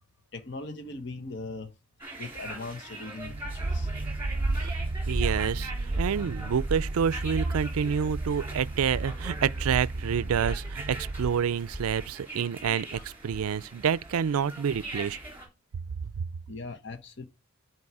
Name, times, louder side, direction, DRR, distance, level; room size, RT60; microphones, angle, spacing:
voice 1, 0.3-1.7 2.2-3.9 8.8-8.9 16.5-17.2, left 3 dB, 55° left, 1.0 m, -39 dB
sound 1, 2.0-15.5, right 2 dB, 10° right, 2.9 m, -42 dB
sound 2, 3.2-11.6, right 2 dB, 45° right, 0.7 m, -32 dB
voice 2, 5.1-5.7 6.0-15.2, right 7 dB, 85° right, 0.4 m, -28 dB
11.0 x 4.7 x 4.8 m
head